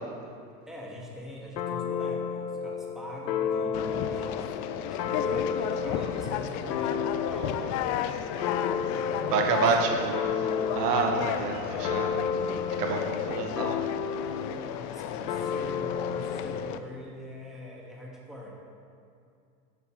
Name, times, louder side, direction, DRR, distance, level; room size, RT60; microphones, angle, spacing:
voice 1, 0.7-7.6 8.9-9.5 9.9-10.0 14.1-18.5, left 1 dB, ahead, -3 dB, 1.7 m, -43 dB
sound 1, 1.6-7.8 8.4-14.6 15.3-16.7, left 6 dB, 90° left, 0.7 m, -32 dB
Conversation, 3.7-16.8, left 10 dB, 40° left, 0.5 m, -34 dB
voice 2, 9.3-10.5 10.7-12.2 12.8-13.8, right 4 dB, 75° right, 2 dB, 1.4 m, -28 dB
13.0 x 7.7 x 3.2 m, 2.4 s
hypercardioid pair, 100°, 49 cm